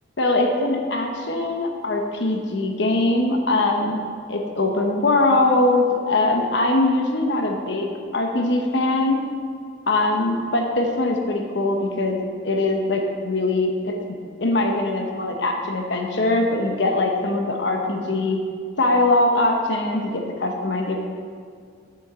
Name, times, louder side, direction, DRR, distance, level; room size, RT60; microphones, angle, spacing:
voice 1, 0.2-4.0 4.3-9.2 9.9-13.9 14.4-18.4 18.8-21.0, left 2 dB, 65° left, 2 dB, 1.0 m, -22 dB
7.3 x 6.3 x 7.6 m, 2.2 s
head